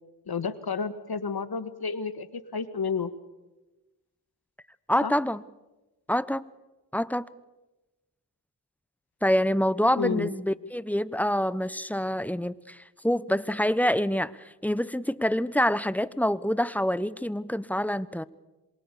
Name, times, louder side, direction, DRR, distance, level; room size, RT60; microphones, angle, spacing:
voice 1, 0.3-3.1 5.0-5.1 10.0-10.3, left 5 dB, 65° left, 12 dB, 1.7 m, -31 dB
voice 2, 4.9-5.4 6.1-6.4 6.9-7.2 9.2-18.2, equal, 5° left, 17 dB, 0.8 m, -26 dB
27.0 x 23.5 x 6.9 m, 1.1 s
cardioid pair, 55°, 41 cm